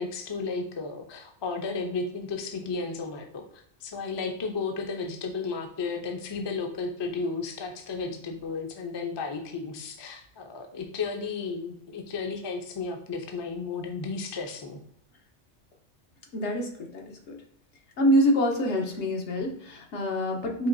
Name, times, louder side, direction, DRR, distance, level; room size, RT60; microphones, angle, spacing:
voice 1, 0.0-3.4 3.8-14.8, left 4 dB, 40° left, 4 dB, 0.4 m, -33 dB
voice 2, 16.3-17.4 18.0-20.7, equal, 80° left, 2 dB, 1.1 m, -26 dB
4.4 x 2.9 x 2.5 m, 0.71 s
omnidirectional pair, 1.2 m